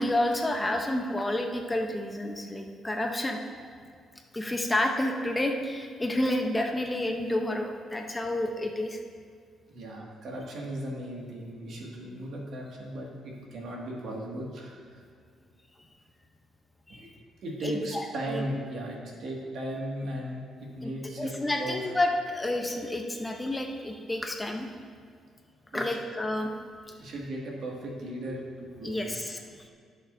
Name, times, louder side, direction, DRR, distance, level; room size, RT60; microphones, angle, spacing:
voice 1, 0.0-3.4 4.3-9.0 16.9-17.1 17.6-18.5 20.8-20.9 21.2-24.7 25.7-26.5 26.9-27.0 28.8-29.7, left 1 dB, 15° left, 3 dB, 0.8 m, -30 dB
voice 2, 9.7-15.0 16.9-17.1 17.4-21.3 21.6-21.7 25.7-26.0 27.0-29.0, right 1 dB, 65° right, -2 dB, 2.1 m, -36 dB
15.5 x 6.5 x 2.7 m, 2.1 s
cardioid pair, 90°, 0 cm